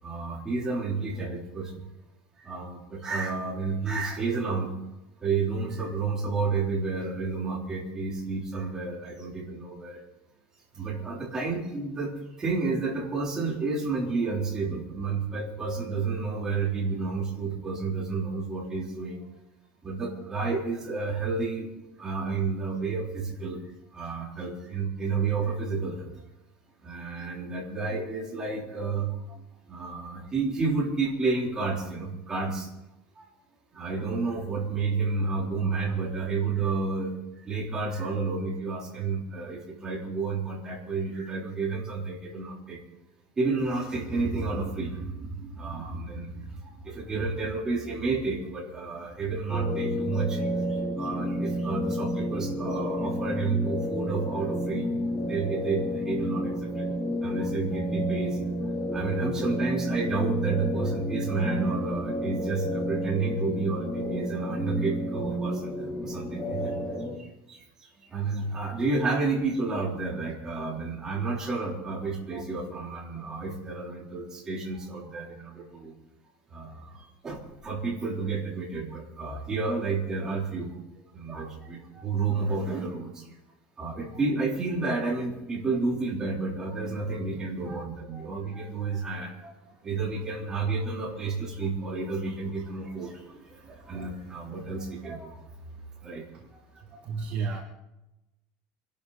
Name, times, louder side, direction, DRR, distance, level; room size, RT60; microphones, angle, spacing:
voice 1, 0.0-1.7 2.4-4.7 5.2-10.0 10.7-19.2 19.8-21.7 22.0-23.6 23.9-26.1 26.8-29.4 29.7-32.7 33.2-33.3 33.7-37.2 37.4-42.8 43.4-56.9 57.2-58.4 58.9-65.7 66.0-76.0 76.5-80.8 81.1-83.3 83.8-89.5 89.8-95.4 96.0-96.2 96.5-96.6, right 4 dB, 15° right, -3 dB, 3.6 m, -31 dB
sound 1, 49.5-67.2, equal, 5° left, 3.1 m, -30 dB
voice 2, 97.0-97.6, right 5 dB, 35° right, 0 dB, 1.8 m, -30 dB
25.0 x 12.5 x 4.1 m, 0.95 s
cardioid pair, 175°, 4 cm